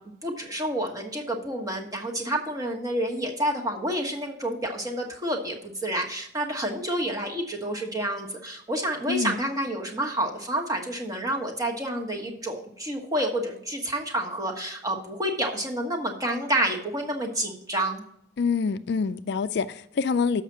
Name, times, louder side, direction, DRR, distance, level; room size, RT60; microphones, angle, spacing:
voice 1, 0.2-18.0, right 1 dB, 15° right, 1.3 m, -29 dB
voice 2, 9.1-9.4 18.4-20.4, left 5 dB, 55° left, 0.4 m, -26 dB
7.2 x 5.8 x 7.3 m
head